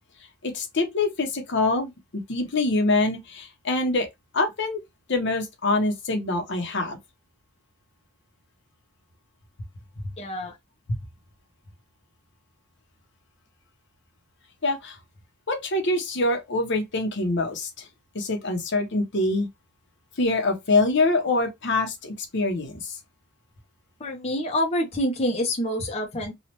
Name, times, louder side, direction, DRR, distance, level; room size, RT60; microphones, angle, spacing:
voice 1, 0.4-4.1 4.3-4.8 5.1-7.0 10.0-10.1 14.6-15.0 15.5-17.9 18.1-19.5 20.2-23.0, left 2 dB, 60° left, 0.8 m, -25 dB
voice 2, 10.2-10.5 24.0-26.3, left 1 dB, 30° left, 0.7 m, -27 dB
3.1 x 2.4 x 2.9 m
head